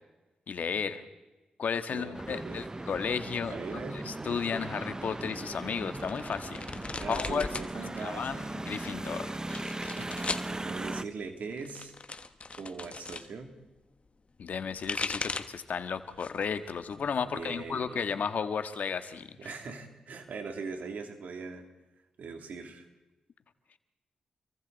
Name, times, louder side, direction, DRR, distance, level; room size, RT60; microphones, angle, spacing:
voice 1, 0.5-1.0 1.6-6.7 7.1-7.5 8.0-9.3 14.4-19.3, left 6 dB, 70° left, 9 dB, 1.6 m, -33 dB
voice 2, 1.9-2.7 3.5-4.1 7.0-8.5 9.8-10.2 10.5-11.9 12.6-13.5 17.3-18.1 19.4-21.6 22.2-22.9, right 4 dB, 75° right, 4 dB, 3.0 m, -41 dB
sound 1, 2.1-11.0, right 2 dB, 25° right, 0.8 m, -38 dB
sound 2, 5.9-7.7 8.0-8.7 9.3-10.5 11.5-13.3 14.5-15.6 16.1-16.5 16.9-17.9, left 4 dB, 45° left, 1.3 m, -38 dB
30.0 x 23.5 x 4.2 m, 1.1 s
supercardioid pair, 45°, 3 cm